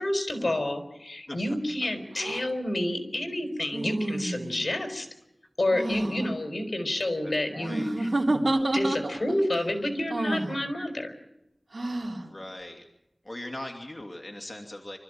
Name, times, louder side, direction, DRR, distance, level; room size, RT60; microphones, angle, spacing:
voice 1, 0.0-5.1 5.6-11.1, left 1 dB, 60° left, 6 dB, 4.2 m, -29 dB
sound 1, 2.2-2.4 3.7-4.6 5.7-6.3 7.6-9.4 10.1-10.5 11.7-12.2, right 2 dB, 70° right, 3.1 m, -29 dB
voice 2, 7.2-7.9 12.1-12.8 13.2-15.0, left 1 dB, 30° left, 2 dB, 2.7 m, -40 dB
27.0 x 14.0 x 8.9 m, 0.88 s
wide cardioid pair, 55°, 0 cm